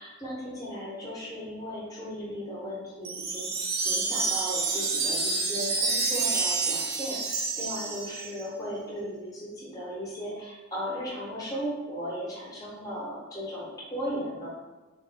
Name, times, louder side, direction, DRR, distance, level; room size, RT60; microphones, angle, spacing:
voice 1, 0.0-14.5, equal, 20° left, -6 dB, 0.6 m, -36 dB
Wind chime, 3.0-8.4, right 4 dB, 50° right, 0.4 m, -28 dB
2.2 x 2.0 x 3.6 m, 1.2 s
head